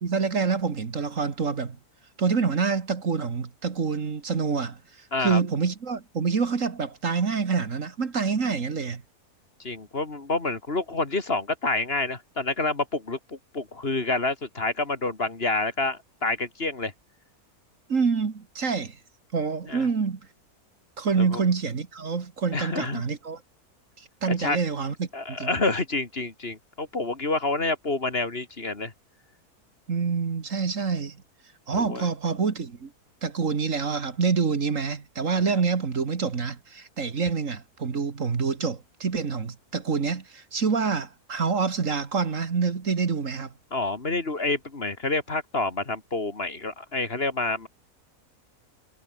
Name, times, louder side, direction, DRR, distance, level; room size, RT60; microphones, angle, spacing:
voice 1, 0.0-1.8 2.2-4.8 5.2-9.0 17.9-19.0 19.3-20.2 21.0-23.4 24.0-25.5 29.9-31.2 31.7-32.9 33.2-43.5, right 5 dB, 55° right, 2.1 m, -27 dB
voice 2, 9.6-16.9 19.7-19.9 21.2-21.4 22.5-23.0 24.4-24.6 25.1-28.9 31.7-32.1 35.4-35.5 43.7-47.7, left 2 dB, 40° left, 2.6 m, -28 dB
omnidirectional pair, 1.6 m